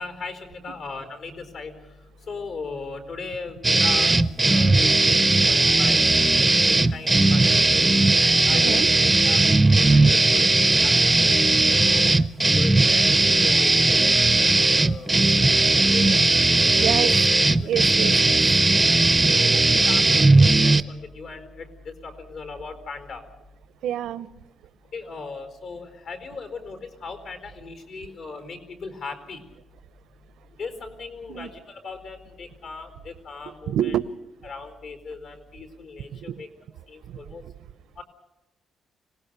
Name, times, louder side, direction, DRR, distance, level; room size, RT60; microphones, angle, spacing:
voice 1, 0.0-1.8 2.3-6.0 6.8-7.7 8.2-9.4 9.7-10.4 10.7-12.2 12.5-14.2 14.5-15.1 15.9-16.1 16.5-17.7 18.9-23.2 24.9-29.4 30.6-34.0 34.4-36.5 36.9-37.4 38.0-38.1, left 4 dB, 60° left, 4.4 m, -38 dB
sound 1, 3.6-20.8, right 2 dB, 10° right, 0.7 m, -18 dB
voice 2, 8.5-8.9 16.8-17.1 17.6-18.4 23.8-24.3 31.3-31.5 33.7-34.1 36.1-36.4 37.1-37.2, right 10 dB, 85° right, 0.7 m, -27 dB
25.5 x 18.5 x 6.8 m
cardioid pair, 150°, 0 cm